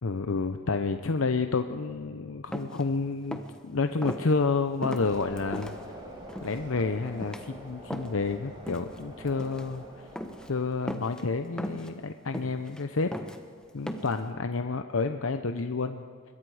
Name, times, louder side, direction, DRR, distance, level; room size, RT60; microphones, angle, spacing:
voice 1, 0.0-5.8 6.4-10.1 10.5-13.1 13.7-16.0, left 4 dB, 75° left, 8 dB, 0.7 m, -29 dB
sound 1, 2.5-2.8 3.2-3.6 4.0-4.2 4.8-5.7 6.3-6.6 7.0-7.5 7.9-8.3 8.7-9.0 9.3-9.7 10.2-10.5 10.9-11.2 11.6-11.9 12.3-12.8 13.1-13.4 13.9-14.2, equal, 5° left, 1.1 m, -37 dB
sound 2, 5.0-10.6, equal, 20° right, 4.9 m, -45 dB
25.5 x 22.0 x 4.9 m, 2.2 s
head